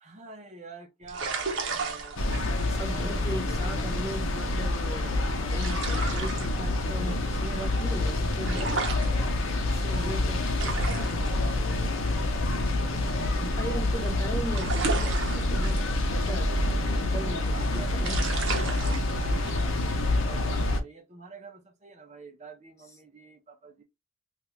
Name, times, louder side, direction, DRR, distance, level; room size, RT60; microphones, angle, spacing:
voice 1, 0.0-2.2 2.6-4.1 10.6-13.3 17.5-19.7 20.2-23.8, right 4 dB, 35° right, 0.6 m, -48 dB
sound 1, 1.0-13.9 14.2-20.4, right 4 dB, 65° right, 0.8 m, -36 dB
sound 2, 2.2-20.8, left 2 dB, 70° left, 0.7 m, -27 dB
voice 2, 2.7-8.8 9.6-11.1 13.4-16.6 16.9-18.2, right 1 dB, 15° left, 0.9 m, -38 dB
2.8 x 2.4 x 3.3 m
head